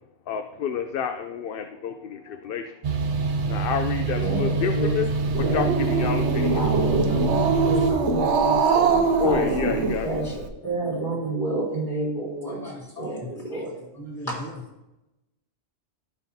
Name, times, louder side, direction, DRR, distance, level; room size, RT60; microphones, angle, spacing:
voice 1, 0.3-2.8 3.5-6.6 9.2-10.1, left 7 dB, 60° left, 7 dB, 0.7 m, -29 dB
sound 1, 2.8-7.9, right 4 dB, 50° right, 0.8 m, -26 dB
voice 2, 4.2-4.9 5.4-5.7 6.5-9.5 10.0-10.3 10.6-12.6 13.0-13.7 14.3-14.4, right 2 dB, 40° left, -6 dB, 3.8 m, -29 dB
Growling, 5.1-10.5, right 4 dB, 80° right, 1.0 m, -23 dB
voice 3, 7.1-8.7 9.0-9.2 12.5-13.3 13.9-14.6, left 1 dB, 15° left, -6 dB, 2.8 m, -40 dB
16.0 x 5.6 x 2.7 m, 0.96 s
omnidirectional pair, 1.2 m